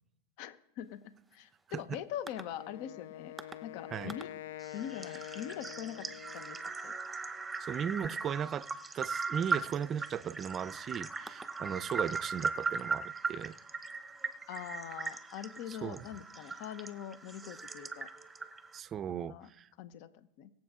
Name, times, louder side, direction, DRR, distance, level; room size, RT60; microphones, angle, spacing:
voice 1, 0.4-1.0 1.3-3.3 3.6-4.3 4.7-6.1 6.3-6.6 6.8-6.9 14.5-18.1 19.1-19.5 19.8-20.5, left 10 dB, 60° left, 0.9 m, -43 dB
sound 1, 2.3-2.4 3.4-3.5 4.1-4.2 4.6-18.8, right 4 dB, 10° right, 0.8 m, -39 dB
Wind instrument woodwind instrument, 2.5-6.8, left 13 dB, 80° left, 0.3 m, -46 dB
voice 2, 7.6-13.6 15.7-16.0 18.7-19.7, right 8 dB, 30° right, 0.5 m, -37 dB
22.5 x 7.7 x 3.7 m
hypercardioid pair, 115°, 0 cm